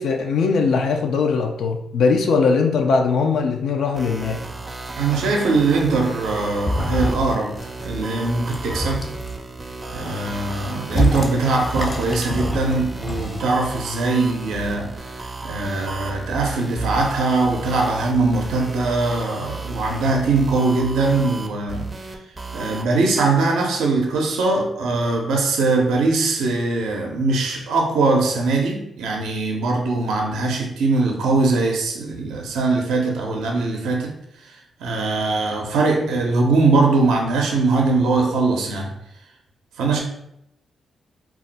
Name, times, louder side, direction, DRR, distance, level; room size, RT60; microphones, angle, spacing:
voice 1, 0.0-4.4, left 4 dB, 80° left, 3 dB, 0.4 m, -20 dB
sound 1, 3.9-22.9, right 3 dB, 30° right, 0.5 m, -34 dB
voice 2, 5.0-7.6 7.8-9.1 9.9-21.9 22.5-34.1 34.5-38.9 39.8-40.0, right 3 dB, 90° right, 1 dB, 0.5 m, -21 dB
sound 2, 6.6-7.3 7.6-8.0 8.4-9.3 9.9-13.4, left 1 dB, 35° left, 0.7 m, -26 dB
2.3 x 2.1 x 3.9 m, 0.79 s
cardioid pair, 65°, 0 cm